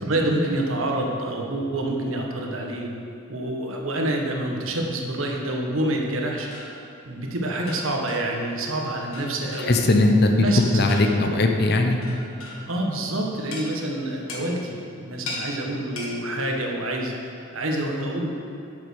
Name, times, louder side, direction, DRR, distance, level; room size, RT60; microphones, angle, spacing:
voice 1, 0.0-2.9 3.3-6.5 7.1-9.8 10.4-10.8 12.7-17.1 17.5-18.3, right 1 dB, 70° right, 0 dB, 1.4 m, -27 dB
sound 1, 6.5-6.8 7.7-8.4 9.1-9.9 10.5-11.3 12.0-12.7 13.5-13.7 14.3-14.5 15.3-15.5 16.0-16.2, left 2 dB, 80° left, 1.9 m, -38 dB
voice 2, 9.7-10.5 10.7-12.0, left 2 dB, 50° left, 4 dB, 0.8 m, -19 dB
8.5 x 7.0 x 6.2 m, 2.7 s
head